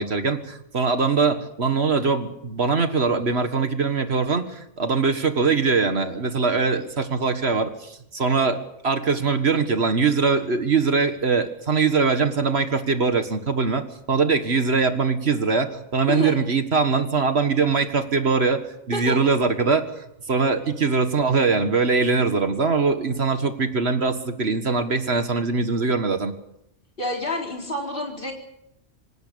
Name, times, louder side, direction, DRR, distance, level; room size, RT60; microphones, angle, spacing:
voice 1, 0.0-18.6 18.9-26.3, right 4 dB, 60° right, 8 dB, 1.9 m, -22 dB
voice 2, 27.0-28.3, left 1 dB, 45° left, 1 dB, 4.5 m, -28 dB
26.5 x 16.5 x 6.9 m, 0.79 s
omnidirectional pair, 1.2 m